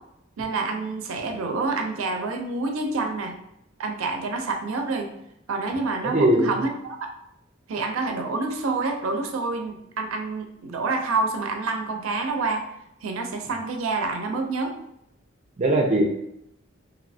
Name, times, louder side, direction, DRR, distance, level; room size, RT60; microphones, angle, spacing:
voice 1, 0.4-3.3 3.8-5.1 5.5-7.0 7.7-12.6 13.0-14.7, right 3 dB, 85° right, 4 dB, 0.4 m, -27 dB
voice 2, 6.0-6.6 15.6-16.0, right 1 dB, 35° right, 1 dB, 0.5 m, -20 dB
3.1 x 2.6 x 2.6 m, 0.79 s
head